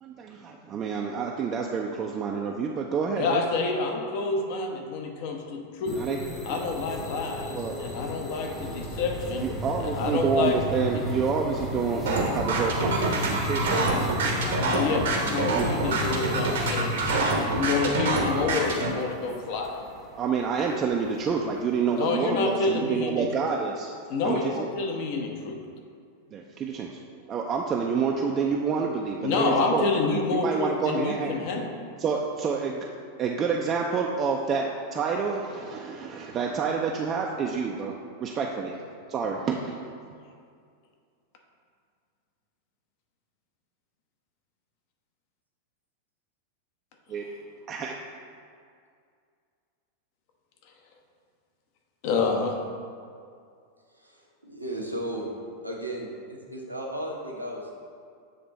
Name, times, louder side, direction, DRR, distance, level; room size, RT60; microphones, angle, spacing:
voice 1, 0.0-3.4 6.0-6.2 7.5-7.8 9.4-14.1 14.8-14.9 15.2-15.7 20.2-23.9 24.2-24.7 26.3-27.0 27.3-29.8 30.4-31.3 32.0-32.9 33.2-38.7 39.1-39.8 47.1-47.2 47.7-47.9, right 5 dB, 30° right, 0 dB, 0.4 m, -28 dB
voice 2, 3.2-6.0 6.4-9.5 9.8-11.0 14.4-19.7 22.0-23.5 24.1-25.6 29.2-31.7 47.1-47.2 52.0-52.6, left 4 dB, 45° left, 2 dB, 0.8 m, -28 dB
sound 1, 5.9-21.2, left 1 dB, 15° left, 0.8 m, -34 dB
sound 2, 12.1-18.9, right 3 dB, 60° right, 0.9 m, -26 dB
voice 3, 53.9-55.3 55.6-56.1 56.5-57.7, right 1 dB, 90° right, -2 dB, 0.9 m, -35 dB
7.9 x 3.3 x 4.0 m, 2.3 s
figure-of-eight pair, 90°, 0 cm